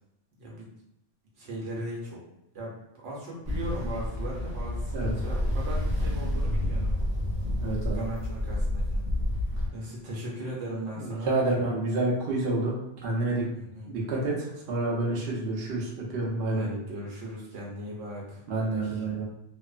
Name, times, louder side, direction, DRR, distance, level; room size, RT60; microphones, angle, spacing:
voice 1, 0.4-0.7 1.3-2.2 2.5-2.8 3.0-6.9 7.6-9.0 9.7-11.3 13.5-13.9 16.5-19.0, right 1 dB, 85° right, -4 dB, 1.1 m, -38 dB
Ocean, 3.4-9.7, left 1 dB, 30° right, 0.6 m, -29 dB
voice 2, 7.6-8.0 11.0-12.7 13.0-13.4 13.9-16.6 18.5-19.2, right 2 dB, 60° right, -4 dB, 0.8 m, -28 dB
2.9 x 2.0 x 2.4 m, 0.84 s
omnidirectional pair, 1.2 m